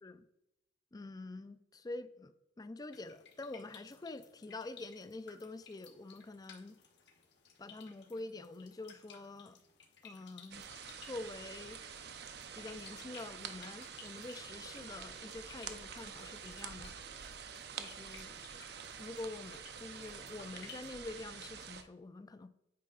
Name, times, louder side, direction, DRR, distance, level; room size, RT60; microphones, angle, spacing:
voice 1, 0.9-2.3 2.6-6.8 7.6-9.6 10.0-10.7 11.0-11.8 12.5-17.0 17.7-18.4 19.0-22.5, left 2 dB, 20° left, 12 dB, 0.4 m, -46 dB
sound 1, 2.9-21.0, left 6 dB, 65° left, 1.2 m, -59 dB
sound 2, 10.5-21.8, right 7 dB, 60° right, 0.6 m, -47 dB
8.5 x 4.8 x 3.9 m, 0.85 s
head